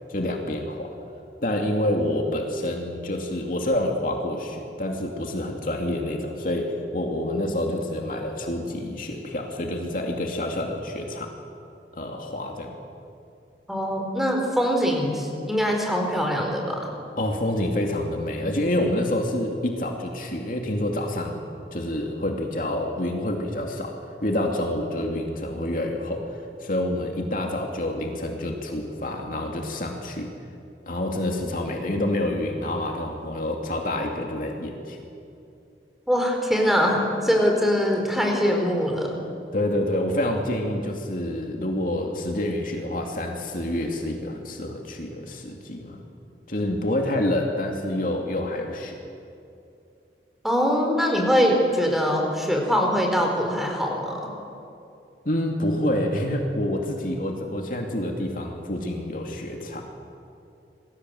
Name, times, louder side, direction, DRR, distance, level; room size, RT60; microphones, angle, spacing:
voice 1, 0.1-0.9 1.4-11.3 11.9-12.8 17.2-21.4 21.7-23.9 24.2-30.3 30.9-35.0 39.5-46.0 46.5-49.0 55.2-59.9, left 1 dB, 50° left, 2 dB, 2.7 m, -27 dB
voice 2, 13.7-16.8 36.1-39.2 50.4-54.2, equal, ahead, 1 dB, 4.4 m, -23 dB
28.0 x 21.5 x 7.9 m, 2.6 s
head